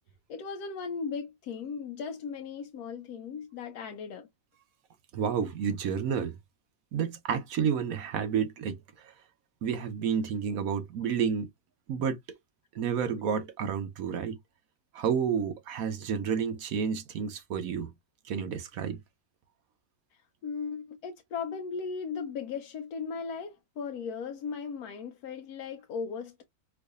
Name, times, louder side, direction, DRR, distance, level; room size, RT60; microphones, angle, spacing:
voice 1, 0.3-4.3 20.1-26.4, left 5 dB, 85° left, 1.1 m, -37 dB
voice 2, 5.1-6.4 6.9-9.1 9.6-11.5 11.9-12.2 12.7-14.4 14.9-17.9 18.2-19.0, right 7 dB, 70° right, 1.2 m, -30 dB
4.6 x 2.6 x 2.4 m
omnidirectional pair, 1.6 m